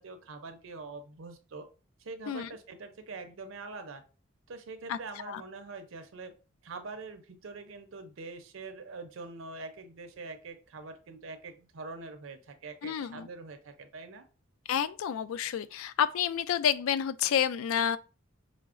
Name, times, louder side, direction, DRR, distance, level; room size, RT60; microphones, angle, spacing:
voice 1, 0.0-1.7 2.0-4.0 4.5-6.3 6.6-14.3, right 3 dB, 65° right, 0.5 m, -44 dB
voice 2, 12.8-13.3 14.7-18.0, left 8 dB, 75° left, 0.3 m, -29 dB
5.6 x 2.0 x 2.4 m
head